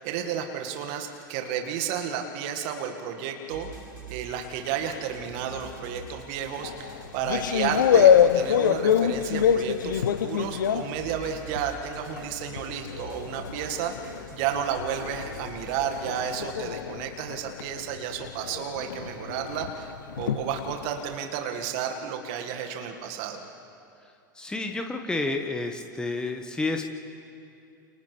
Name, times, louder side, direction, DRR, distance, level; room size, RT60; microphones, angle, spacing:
voice 1, 0.0-3.7 4.1-13.9 14.3-19.9 20.2-23.5, right 8 dB, 50° right, 4 dB, 2.0 m, -32 dB
sound 1, 3.5-16.7, right 2 dB, 90° right, 5.0 m, -45 dB
sound 2, 6.6-11.8 12.2-21.1, left 8 dB, 65° left, 0.9 m, -25 dB
voice 2, 24.3-26.9, left 3 dB, 5° left, 4 dB, 1.4 m, -30 dB
29.0 x 29.0 x 3.5 m, 2.6 s
figure-of-eight pair, 85°, 11 cm